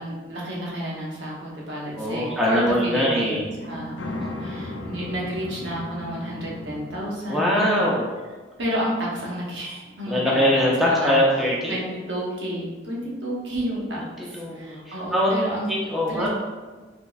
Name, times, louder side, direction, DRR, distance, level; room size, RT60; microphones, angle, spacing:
voice 1, 0.0-7.9 8.6-10.4 10.8-11.2 11.7-15.7 16.1-16.3, equal, 70° right, -5 dB, 0.9 m, -30 dB
voice 2, 2.0-3.5 4.5-5.0 7.3-8.1 10.1-11.8 14.2-15.3 15.7-16.3, equal, ahead, -6 dB, 0.5 m, -23 dB
sound 1, 3.4-7.0, left 2 dB, 75° left, 0.4 m, -36 dB
3.5 x 2.9 x 2.3 m, 1.3 s
head